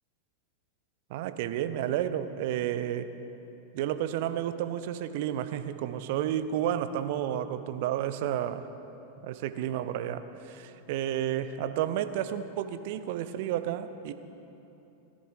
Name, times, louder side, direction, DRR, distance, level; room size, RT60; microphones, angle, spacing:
voice 1, 1.1-3.1 3.7-8.7 9.2-14.1, right 11 dB, 50° right, 11 dB, 0.7 m, -31 dB
18.0 x 11.5 x 4.8 m, 3.0 s
figure-of-eight pair, 90°, 0 cm